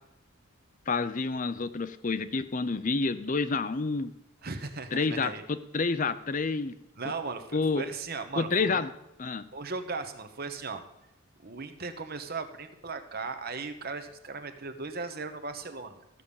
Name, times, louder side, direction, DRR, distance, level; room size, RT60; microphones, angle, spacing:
voice 1, 0.9-4.1 4.9-6.7 7.5-7.8 8.4-8.9 9.2-9.4, left 4 dB, 35° left, 13 dB, 0.6 m, -29 dB
voice 2, 4.4-5.4 7.0-8.8 9.5-10.8 11.4-16.0, right 4 dB, 45° right, 8 dB, 1.1 m, -37 dB
14.5 x 6.7 x 7.2 m, 0.85 s
head